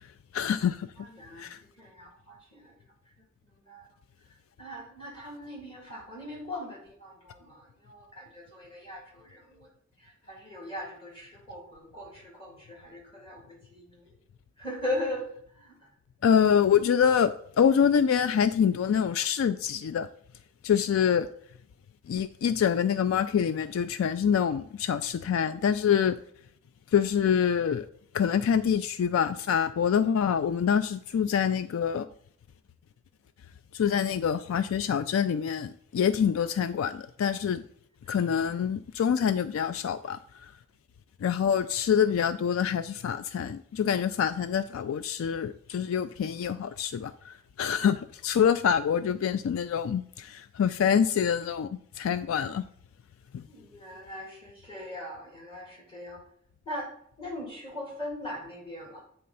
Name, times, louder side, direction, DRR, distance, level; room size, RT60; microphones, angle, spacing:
voice 1, 0.3-0.9 1.4-1.6 16.2-20.1 20.6-21.3 22.1-26.2 26.9-27.9 28.1-32.1 33.7-37.6 38.1-40.2 41.2-51.7 52.0-52.6 53.3-53.4, left 8 dB, 75° left, 0.3 m, -26 dB
voice 2, 1.0-2.8 3.4-3.9 4.6-9.7 10.0-14.2 14.6-15.9 53.5-56.2 56.7-59.0, left 1 dB, 25° left, 2.1 m, -40 dB
8.6 x 3.4 x 5.4 m
head